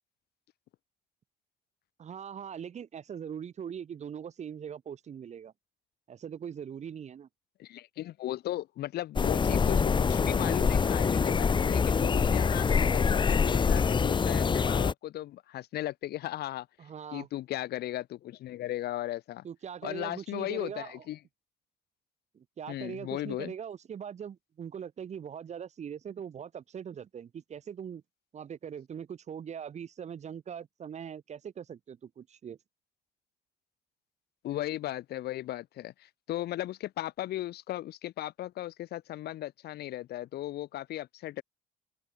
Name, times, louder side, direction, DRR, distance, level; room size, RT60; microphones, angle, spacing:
voice 1, 2.0-5.5 6.1-7.3 16.8-17.3 19.4-21.0 22.3-28.0 28.3-32.6, right 8 dB, 40° right, 1.8 m, -41 dB
voice 2, 7.6-16.7 17.1-19.4 19.8-21.2 22.7-23.5 34.4-41.4, left 14 dB, 70° left, 4.8 m, -36 dB
sound 1, 9.2-14.9, left 5 dB, 30° left, 1.1 m, -25 dB
open air
cardioid pair, 110°, 17 cm